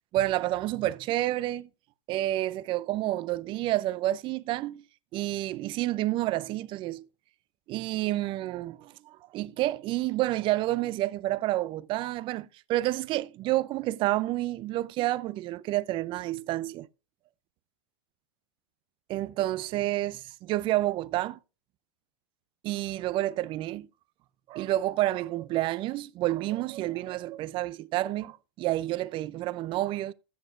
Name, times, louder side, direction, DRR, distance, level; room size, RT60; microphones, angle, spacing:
voice 1, 0.1-1.7 2.1-4.8 5.1-7.1 7.7-16.9 19.1-21.4 22.6-23.9 24.5-30.1, right 16 dB, 35° right, 0.5 m, -29 dB
14.5 x 8.9 x 2.5 m
hypercardioid pair, 115°, 15 cm